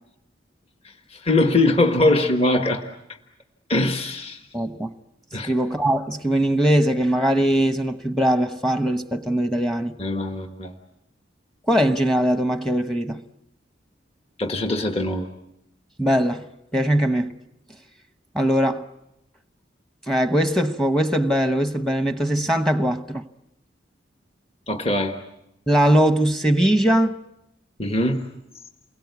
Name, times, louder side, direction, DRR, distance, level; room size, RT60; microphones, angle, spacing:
voice 1, 1.1-2.8 3.7-4.4 5.3-5.5 10.0-10.7 14.4-15.3 24.7-25.2 27.8-28.2, left 2 dB, 30° left, 1.4 m, -21 dB
voice 2, 4.5-4.9 5.4-9.9 11.7-13.2 16.0-16.5 16.7-17.3 18.3-18.8 20.1-23.2 25.7-27.2, right 1 dB, ahead, 1.0 m, -21 dB
29.0 x 22.0 x 8.2 m
head